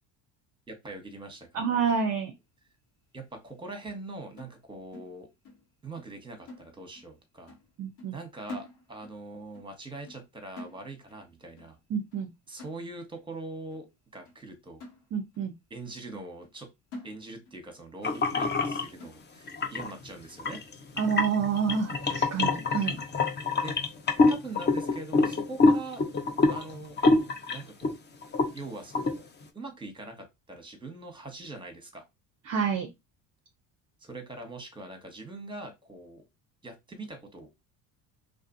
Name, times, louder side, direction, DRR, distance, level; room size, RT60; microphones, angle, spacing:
voice 1, 0.7-1.6 3.1-5.3 5.8-7.5 8.1-11.8 12.5-13.9 14.1-14.8 15.7-16.7 17.0-20.6 22.8-23.0 23.6-23.7 24.2-26.0 26.5-27.0 27.5-27.9 28.5-29.2 29.5-32.0 34.0-36.2 36.6-37.5, right 2 dB, 10° right, 0.9 m, -42 dB
voice 2, 1.5-2.3 7.8-8.1 11.9-12.3 15.1-15.5 21.0-23.0 32.5-32.9, right 6 dB, 35° right, 0.5 m, -28 dB
sound 1, 4.4-5.7 6.0-6.2 6.5-7.2 7.5-7.7 8.0-9.2 9.5-9.8 10.1-10.3 10.6-11.2 11.6-11.8 12.1-12.3 12.6-13.2 13.7-13.8 14.3-14.4 14.8-15.5 15.9-16.0 16.4-16.6 16.9-17.6 18.0-18.1 18.5-18.6 19.0-19.5 20.0-20.1 20.5-20.7, left 2 dB, 85° left, 1.2 m, -47 dB
sound 2, 18.0-18.8 19.5-19.9 20.4-27.9 28.2-28.6 28.9-29.2, left 3 dB, 25° left, 0.5 m, -25 dB
2.4 x 2.4 x 2.5 m
hypercardioid pair, 65°, 50 cm